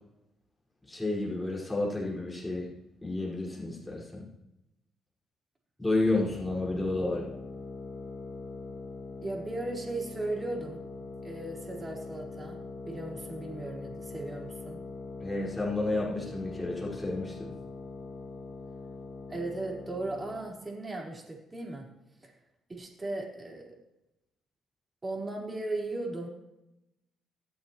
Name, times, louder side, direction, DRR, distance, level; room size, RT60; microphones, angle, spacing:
voice 1, 0.9-2.7 3.0-4.3 5.8-7.2 15.2-17.5, left 2 dB, 10° left, -5 dB, 5.3 m, -31 dB
sound 1, 6.0-20.6, left 3 dB, 60° left, 2.2 m, -42 dB
voice 2, 9.2-10.8 11.2-12.6 12.8-14.8 19.3-21.9 22.2-22.3 22.7-23.8 25.0-26.3, right 2 dB, 25° right, -2 dB, 4.6 m, -37 dB
25.0 x 8.5 x 3.2 m, 0.90 s
cardioid pair, 90°, 0 cm